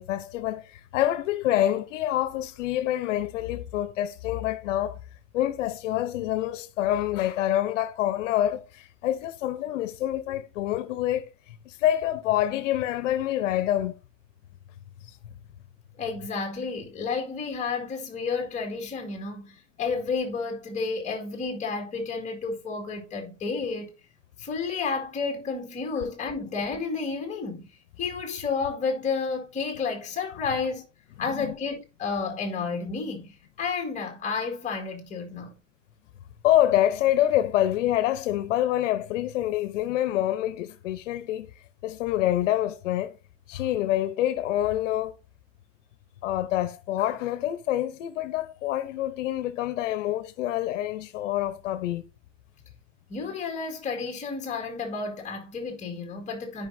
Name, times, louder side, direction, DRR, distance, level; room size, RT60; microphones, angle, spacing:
voice 1, 0.0-5.0 5.3-14.0 31.2-31.5 36.4-41.5 41.8-43.2 43.5-45.1 46.2-52.1, left 13 dB, 75° left, 0.9 m, -26 dB
voice 2, 16.0-23.9 24.4-27.6 28.0-30.8 31.2-35.5 53.1-56.7, left 4 dB, 20° left, 2.0 m, -31 dB
13.0 x 5.5 x 2.7 m
supercardioid pair, 155°, 38 cm